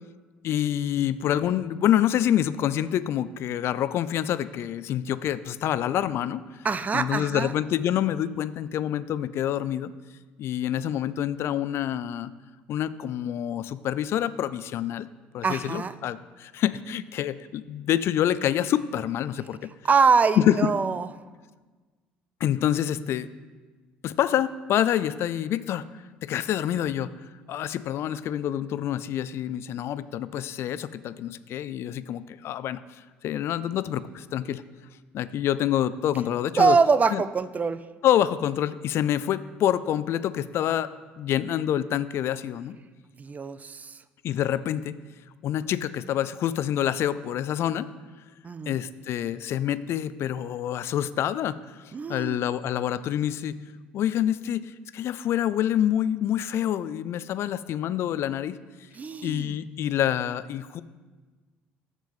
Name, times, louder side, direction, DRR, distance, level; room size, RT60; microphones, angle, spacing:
voice 1, 0.4-6.4 6.9-9.9 10.4-12.3 12.7-15.1 15.3-19.7 20.4-20.7 22.4-23.3 24.0-27.1 27.5-32.8 33.2-34.6 35.1-36.8 37.1-37.2 38.0-40.9 41.2-42.8 44.2-45.0 45.4-47.9 48.7-53.6 53.9-58.6 59.2-60.8, left 11 dB, 55° left, 16 dB, 0.3 m, -27 dB
voice 2, 6.6-7.5 15.4-16.0 19.8-21.1 36.6-37.8 43.2-44.0 48.4-48.8 51.9-52.4 58.9-59.6, right 5 dB, 30° right, 14 dB, 0.4 m, -24 dB
6.7 x 6.1 x 5.3 m, 1.3 s
hypercardioid pair, 65°, 5 cm